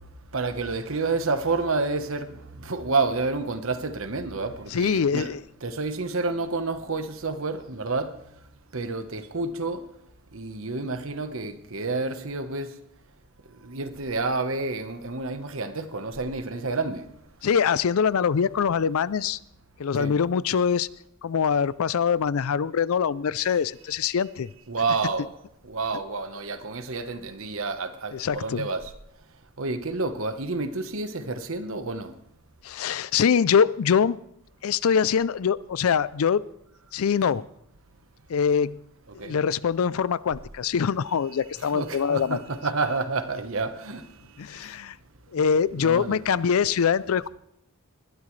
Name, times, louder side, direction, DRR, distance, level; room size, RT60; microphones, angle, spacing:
voice 1, 0.3-5.3 5.6-8.1 8.7-9.8 10.3-12.7 13.6-17.0 20.0-20.1 23.4-23.5 24.7-25.3 25.6-28.9 29.6-32.1 39.2-39.3 41.6-44.1 45.7-46.2, right 3 dB, 65° right, 1.1 m, -29 dB
voice 2, 4.7-5.4 17.4-19.4 19.8-20.9 21.2-24.5 28.1-28.7 32.6-34.2 34.6-36.4 36.9-37.4 38.3-38.8 39.2-42.4 44.4-44.9 45.3-47.3, left 7 dB, 75° left, 0.4 m, -23 dB
20.5 x 12.0 x 3.2 m
head